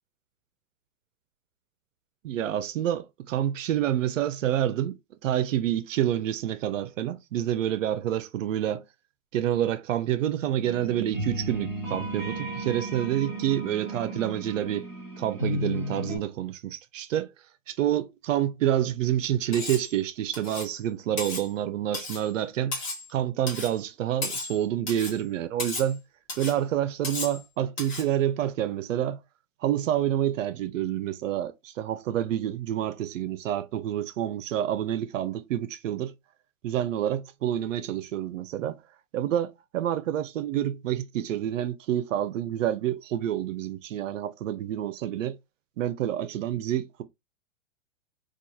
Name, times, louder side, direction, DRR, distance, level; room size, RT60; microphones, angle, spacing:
voice 1, 2.2-8.8 9.3-14.9 15.2-17.3 17.7-22.8 23.1-26.0 26.4-29.2 29.6-36.1 36.6-38.8 39.1-45.4 45.8-47.0, right 11 dB, 75° right, 0.5 m, -28 dB
sound 1, 10.6-16.2, equal, 5° left, 0.9 m, -34 dB
Cutlery silverware, 19.5-19.9 20.3-20.7 21.2-21.5 21.9-22.3 22.7-23.1 23.5-23.7 24.2-24.6 24.9-25.2 25.6-25.9 26.3-26.6 27.0-27.4 27.8-28.1, left 3 dB, 35° left, 1.1 m, -34 dB
2.9 x 2.3 x 2.2 m
hypercardioid pair, 155°, 39 cm